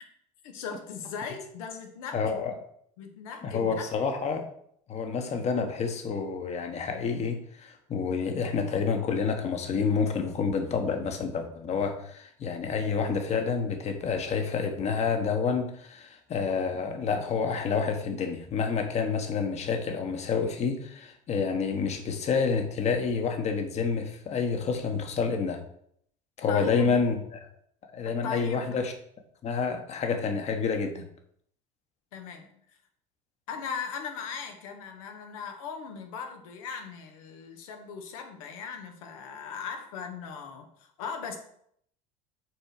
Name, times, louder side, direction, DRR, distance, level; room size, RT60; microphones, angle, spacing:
voice 1, 0.4-2.4 3.0-3.9 26.5-27.0 28.0-28.8 32.1-32.8 33.5-41.4, left 6 dB, 90° left, 4 dB, 1.5 m, -38 dB
voice 2, 2.1-2.5 3.4-4.4 4.9-25.6 26.4-27.1 27.9-28.9 29.4-31.1, left 5 dB, 40° left, 5 dB, 1.4 m, -28 dB
6.3 x 4.4 x 6.5 m, 0.68 s
supercardioid pair, 105°, 17 cm